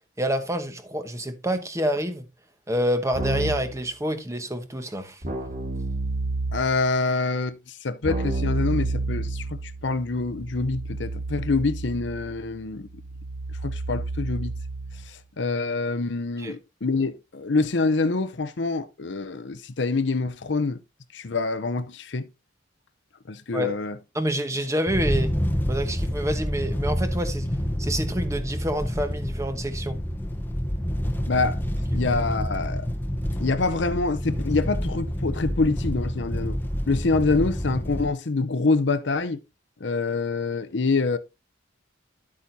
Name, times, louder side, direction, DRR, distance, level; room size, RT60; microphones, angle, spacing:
voice 1, 0.2-2.2 2.7-5.2 16.4-16.5 23.5-23.8 24.1-25.3 25.7-27.5 27.8-30.0, equal, 15° right, 1.1 m, -27 dB
Keyboard (musical), 3.1-3.8 5.2-6.8 8.0-15.1, right 2 dB, 40° right, 2.6 m, -30 dB
voice 2, 6.5-12.9 13.6-14.5 15.1-20.8 21.1-22.3 23.3-24.0 31.3-31.6 31.9-32.9 33.4-36.6 36.9-39.4 39.8-41.2, left 3 dB, 65° left, 0.8 m, -26 dB
sound 1, 24.9-38.1, equal, 10° left, 0.9 m, -28 dB
11.0 x 8.4 x 2.7 m
head